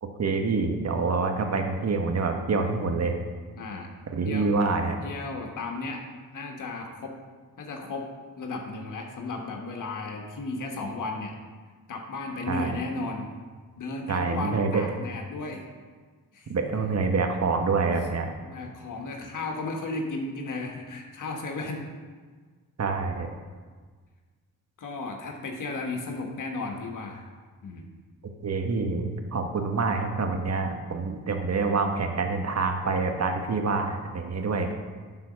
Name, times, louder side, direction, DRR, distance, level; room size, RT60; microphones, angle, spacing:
voice 1, 0.2-3.1 4.1-5.0 12.5-12.8 14.1-14.8 16.5-18.3 22.8-23.3 28.4-34.7, right 4 dB, 45° right, 4 dB, 1.3 m, -26 dB
voice 2, 3.6-3.9 4.2-4.5 5.0-6.0 6.3-7.1 7.6-8.1 8.4-11.4 11.9-13.3 13.8-15.7 16.3-16.5 18.4-21.9 24.8-27.3 27.6-27.9, left 3 dB, 60° left, 2 dB, 1.3 m, -34 dB
11.0 x 3.9 x 6.3 m, 1.5 s
supercardioid pair, 55°, 35 cm